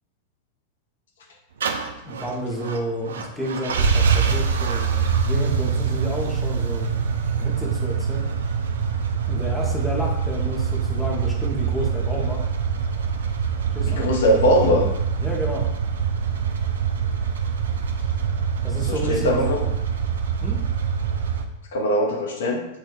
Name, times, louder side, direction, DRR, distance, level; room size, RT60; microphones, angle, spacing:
sound 1, 1.6-21.5, right 6 dB, 65° right, 0.3 m, -24 dB
voice 1, 2.0-6.9 7.4-8.3 9.3-12.4 13.7-14.1 15.2-15.7 18.6-19.7 20.4-20.6, equal, 5° left, -2 dB, 0.7 m, -30 dB
voice 2, 13.9-14.9 18.9-19.6 21.7-22.6, equal, 60° left, 2 dB, 0.5 m, -20 dB
5.3 x 2.6 x 2.3 m, 0.86 s
figure-of-eight pair, 90°, 0 cm